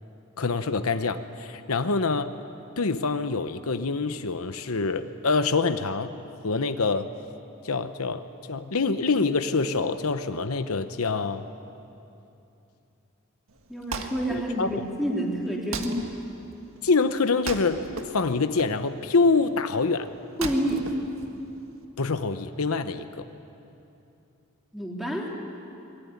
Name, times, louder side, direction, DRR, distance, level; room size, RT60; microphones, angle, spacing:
voice 1, 0.4-2.3 2.8-6.1 6.4-7.1 7.6-11.5 14.3-14.7 16.8-17.8 18.1-20.1 22.0-23.2, left 4 dB, 80° left, 9 dB, 0.9 m, -25 dB
Wood, 13.5-21.8, right 3 dB, 65° right, 1.8 m, -39 dB
voice 2, 13.7-16.1 20.4-20.8 24.7-25.3, equal, ahead, -2 dB, 3.4 m, -28 dB
23.5 x 21.0 x 9.4 m, 2.8 s
head